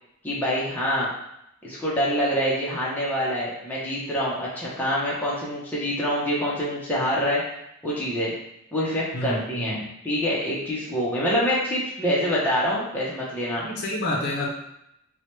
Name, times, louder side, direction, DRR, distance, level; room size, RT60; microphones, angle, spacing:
voice 1, 0.2-1.1 1.6-7.4 7.8-8.3 8.7-9.8 10.0-13.6, equal, 10° left, -7 dB, 0.6 m, -25 dB
voice 2, 9.1-9.9 13.6-14.5, left 1 dB, 50° left, -2 dB, 0.6 m, -28 dB
4.4 x 2.2 x 3.1 m, 0.80 s
head